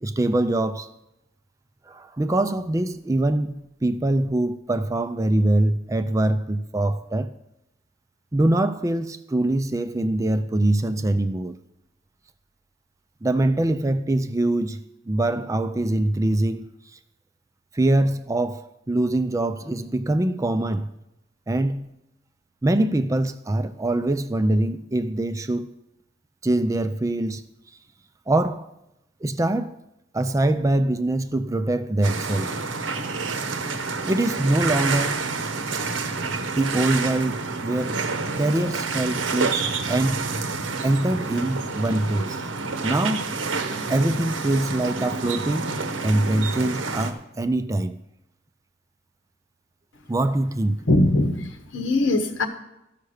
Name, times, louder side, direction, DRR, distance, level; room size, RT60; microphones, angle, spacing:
voice 1, 0.0-0.9 1.9-3.5 3.8-7.3 8.3-11.6 13.2-14.8 15.1-16.7 17.7-20.9 21.5-21.9 22.6-25.7 26.4-27.4 28.3-28.7 29.2-29.7 30.1-32.6 34.0-35.3 36.5-38.0 38.4-40.3 40.8-42.5 42.8-43.3 43.9-45.8 46.0-48.0 50.1-50.8, right 1 dB, 15° right, 0.4 m, -23 dB
sound 1, 32.0-47.1, right 4 dB, 80° right, 0.9 m, -28 dB
voice 2, 50.9-52.5, left 2 dB, 80° left, 1.2 m, -21 dB
13.0 x 5.9 x 6.4 m
head